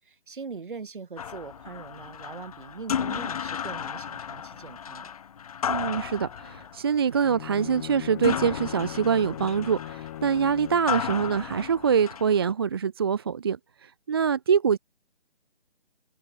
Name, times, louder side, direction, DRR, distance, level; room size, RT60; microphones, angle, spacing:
voice 1, 0.0-5.1, right 5 dB, 55° right, 7.0 m, -41 dB
sound 1, 1.2-12.5, left 8 dB, 35° left, 4.7 m, -34 dB
voice 2, 5.7-14.8, right 7 dB, 25° right, 0.8 m, -25 dB
Bowed string instrument, 7.1-11.0, left 14 dB, 20° left, 1.6 m, -39 dB
figure-of-eight pair, 150°, 31 cm